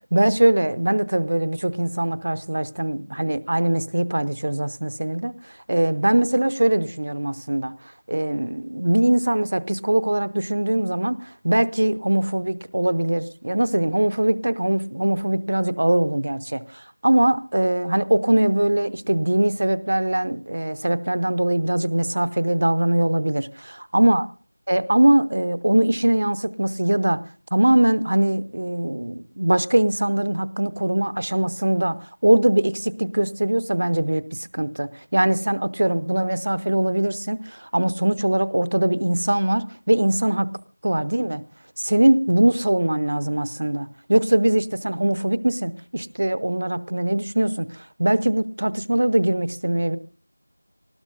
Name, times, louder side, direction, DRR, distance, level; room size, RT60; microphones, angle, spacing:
voice 1, 0.1-7.7 8.1-23.5 23.9-24.3 24.7-27.2 27.5-40.5 40.8-41.4 41.8-50.0, right 1 dB, 35° right, 16 dB, 0.7 m, -21 dB
19.0 x 15.5 x 3.9 m, 0.39 s
figure-of-eight pair, 175°, 0 cm